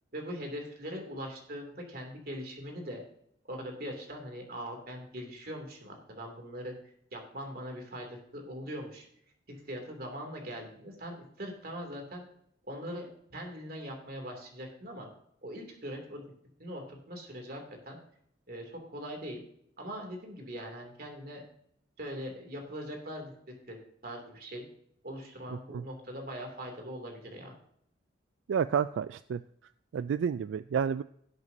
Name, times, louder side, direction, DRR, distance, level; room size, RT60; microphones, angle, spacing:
voice 1, 0.1-3.0 3.5-6.7 7.1-9.1 9.5-12.3 12.6-15.1 15.4-16.2 16.6-18.0 18.5-19.4 19.8-21.4 22.0-23.8 24.0-24.6 25.0-27.5, equal, 50° right, 2 dB, 2.7 m, -41 dB
voice 2, 28.5-29.4 29.9-31.0, right 7 dB, 85° right, 14 dB, 0.3 m, -30 dB
17.0 x 8.0 x 2.7 m, 0.69 s
head